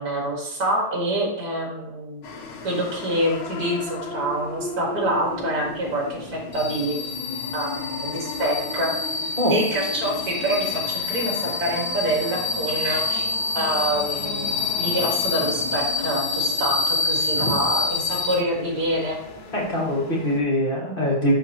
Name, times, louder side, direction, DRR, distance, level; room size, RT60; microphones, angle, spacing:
voice 1, 0.0-2.2 2.6-7.0 7.5-8.9 9.5-13.3 13.6-19.2, right 1 dB, 45° right, -2 dB, 2.2 m, -26 dB
sound 1, 2.2-20.4, left 3 dB, 70° left, 1.7 m, -36 dB
sound 2, 6.5-18.3, left 4 dB, 55° left, 1.2 m, -27 dB
voice 2, 19.5-21.3, left 1 dB, 25° left, -3 dB, 1.7 m, -23 dB
11.0 x 3.7 x 2.9 m, 0.80 s
omnidirectional pair, 2.3 m